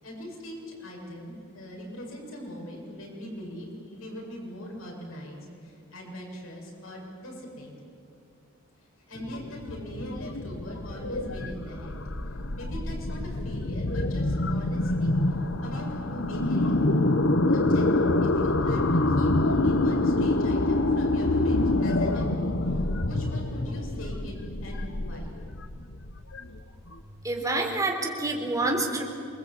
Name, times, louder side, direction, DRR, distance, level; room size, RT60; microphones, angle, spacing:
voice 1, 0.0-7.8 9.1-12.0 12.6-17.1 17.5-25.3, equal, 80° left, -1 dB, 7.8 m, -41 dB
sound 1, 9.2-27.0, left 2 dB, 65° left, 1.2 m, -26 dB
voice 2, 27.2-29.0, right 2 dB, 15° right, 1 dB, 4.0 m, -27 dB
27.5 x 21.5 x 8.8 m, 2.4 s
head